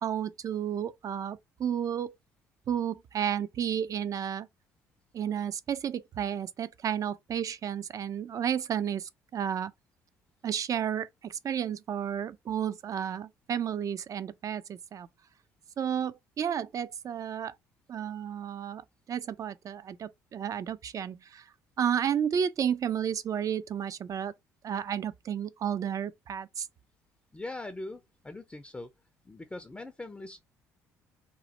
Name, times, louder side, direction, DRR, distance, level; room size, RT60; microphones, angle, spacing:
voice 1, 0.0-2.1 2.7-4.5 5.1-9.7 10.4-15.1 15.8-17.6 17.9-18.8 19.1-21.4 21.8-24.3 24.6-26.7, right 8 dB, 45° right, 0.4 m, -32 dB
voice 2, 27.3-28.9 29.3-30.4, left 2 dB, 15° left, 0.5 m, -41 dB
3.0 x 2.1 x 2.8 m
hypercardioid pair, 60°, 8 cm